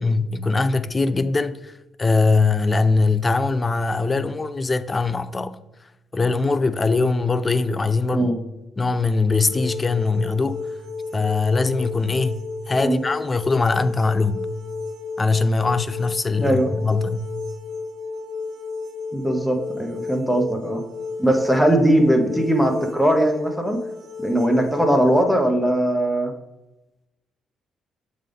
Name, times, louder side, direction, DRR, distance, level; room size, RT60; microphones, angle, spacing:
voice 1, 0.0-1.7 2.0-5.6 6.1-8.3 8.8-10.6 11.1-14.5 15.2-17.3, left 3 dB, 25° left, 0.4 m, -21 dB
sound 1, 9.3-25.2, left 4 dB, 75° right, 0.8 m, -33 dB
voice 2, 16.4-16.7 19.1-20.8 21.2-23.8 24.2-26.3, right 1 dB, ahead, 0.9 m, -20 dB
7.3 x 3.8 x 3.4 m
cardioid pair, 90°, 0 cm